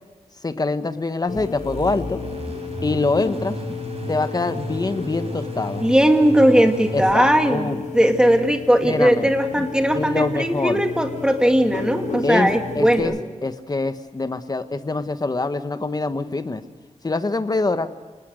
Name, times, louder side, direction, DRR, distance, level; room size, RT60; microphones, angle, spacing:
voice 1, 0.4-2.2 2.8-3.6 4.1-5.8 6.9-7.8 8.8-9.3 9.9-10.8 12.2-12.5 12.7-13.1 13.4-16.6 17.0-17.9, left 3 dB, 30° left, 10 dB, 1.2 m, -24 dB
sound 1, 1.3-13.0, left 5 dB, 85° left, 5.3 m, -33 dB
sound 2, 1.4-7.1, right 3 dB, 55° right, 4.6 m, -34 dB
voice 2, 5.8-13.2, equal, 5° right, 5 dB, 2.2 m, -18 dB
26.5 x 19.0 x 6.4 m, 1.5 s
wide cardioid pair, 130°, 13 cm